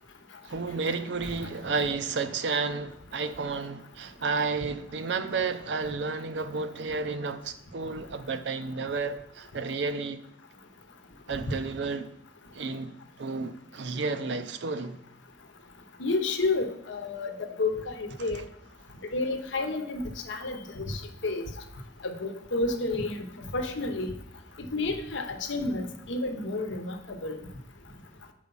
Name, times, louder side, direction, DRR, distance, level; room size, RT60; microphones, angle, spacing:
voice 1, 0.4-10.2 11.3-12.1 12.5-12.9 13.2-15.0 18.2-18.4, right 4 dB, 65° right, 0.5 m, -31 dB
voice 2, 16.0-18.4 19.1-21.5 22.0-24.2 24.7-27.4, left 2 dB, 80° left, 0.9 m, -30 dB
6.9 x 4.7 x 5.4 m
head